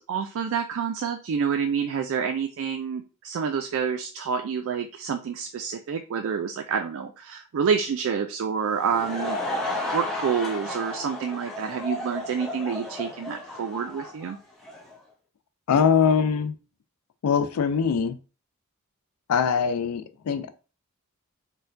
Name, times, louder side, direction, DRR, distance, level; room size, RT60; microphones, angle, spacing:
voice 1, 0.0-9.4 9.9-14.4, right 6 dB, 60° right, 5 dB, 0.3 m, -28 dB
Laughter / Crowd, 8.6-14.9, left 2 dB, ahead, 0.7 m, -33 dB
voice 2, 15.7-16.5 17.2-18.2 19.3-20.5, left 6 dB, 85° left, 11 dB, 0.4 m, -22 dB
4.3 x 2.2 x 2.5 m, 0.34 s
head